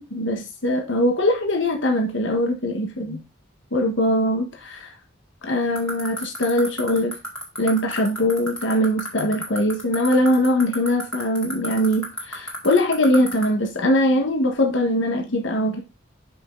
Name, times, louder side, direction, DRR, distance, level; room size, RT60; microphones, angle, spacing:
voice 1, 0.1-3.2 3.7-4.9 5.4-7.1 7.6-15.8, left 1 dB, 70° left, 3 dB, 1.3 m, -21 dB
sound 1, 5.7-13.4, left 1 dB, 5° left, 2.1 m, -29 dB
5.7 x 5.3 x 3.8 m, 0.27 s
head